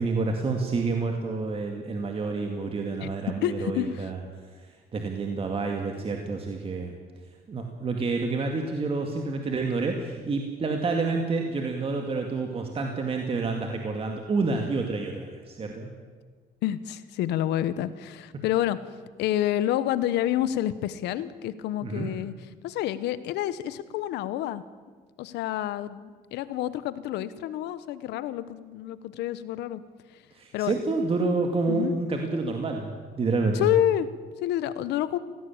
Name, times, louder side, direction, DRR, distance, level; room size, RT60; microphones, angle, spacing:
voice 1, 0.0-4.2 4.9-6.9 7.5-15.9 21.8-22.1 30.3-33.7, right 3 dB, 35° right, 3 dB, 2.2 m, -28 dB
voice 2, 3.4-4.1 16.6-18.8 19.2-22.3 22.6-24.6 25.2-29.8 30.5-30.8 31.7-32.0 33.5-34.1 34.4-35.2, left 12 dB, 85° left, 15 dB, 1.1 m, -28 dB
18.0 x 16.5 x 8.8 m, 1.5 s
cardioid pair, 110°, 17 cm